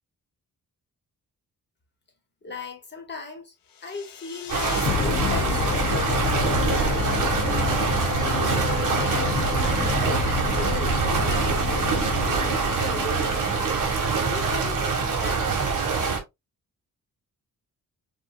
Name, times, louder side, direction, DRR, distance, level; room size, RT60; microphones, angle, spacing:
voice 1, 2.4-3.5 3.8-7.3 8.2-9.4 9.8-13.5 14.1-15.7, left 3 dB, 30° left, 1.8 m, -37 dB
sound 1, 3.9-14.1, left 5 dB, 75° left, 1.0 m, -29 dB
sound 2, 4.5-16.2, right 5 dB, 65° right, 1.9 m, -25 dB
6.1 x 3.4 x 2.5 m
wide cardioid pair, 175°, 34 cm